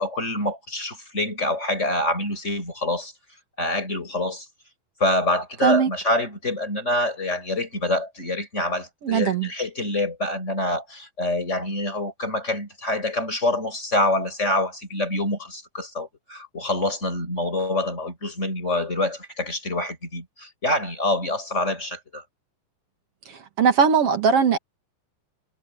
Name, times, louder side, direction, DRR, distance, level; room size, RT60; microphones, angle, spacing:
voice 1, 0.0-3.1 3.6-4.5 5.0-22.2, left 1 dB, 15° left, 5.9 m, -26 dB
voice 2, 9.0-9.5 23.6-24.6, right 6 dB, 50° right, 2.1 m, -19 dB
omnidirectional pair, 4.4 m